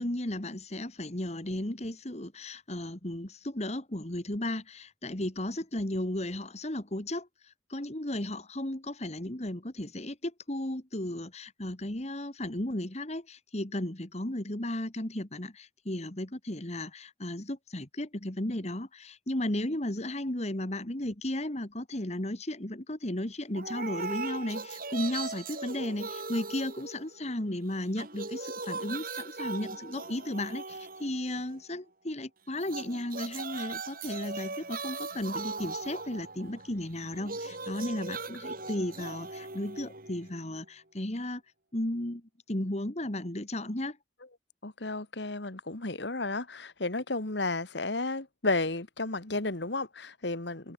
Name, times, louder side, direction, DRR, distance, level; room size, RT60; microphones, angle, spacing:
voice 1, 0.0-41.4 41.7-42.2 42.5-44.0, left 1 dB, 35° left, 2.1 m, -35 dB
sound 1, 23.5-27.5 27.8-31.6 32.6-40.6, right 3 dB, 50° right, 5.1 m, -39 dB
voice 2, 44.6-50.7, left 2 dB, 70° left, 2.1 m, -32 dB
open air
head